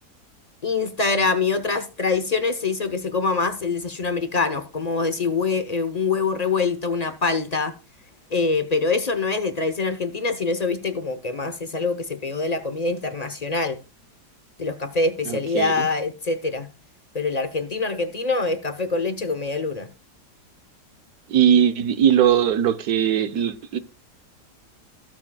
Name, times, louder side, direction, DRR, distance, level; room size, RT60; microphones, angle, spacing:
voice 1, 0.6-7.7 8.3-13.8 14.6-16.7 17.1-19.9, left 4 dB, 35° left, 0.7 m, -24 dB
voice 2, 15.3-15.9 21.3-23.8, right 9 dB, 70° right, 1.3 m, -20 dB
21.0 x 7.4 x 2.3 m
omnidirectional pair, 1.8 m